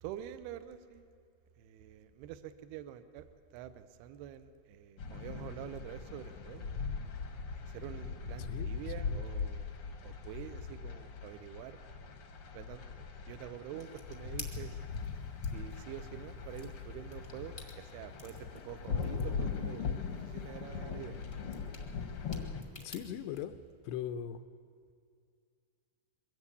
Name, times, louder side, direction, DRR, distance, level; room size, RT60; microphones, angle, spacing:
voice 1, 0.0-1.0 1.6-6.7 7.6-9.8 10.0-11.8 12.5-12.8 13.3-14.8 15.5-21.2, right 10 dB, 75° right, 11 dB, 2.7 m, -47 dB
sound 1, 5.0-22.6, left 5 dB, 65° left, 1.3 m, -40 dB
sound 2, 13.7-23.4, left 3 dB, 40° left, 0.7 m, -54 dB
voice 2, 22.8-23.5 23.8-24.4, left 9 dB, 90° left, 10 dB, 2.9 m, -39 dB
22.5 x 16.0 x 8.3 m, 2.3 s
omnidirectional pair, 5.0 m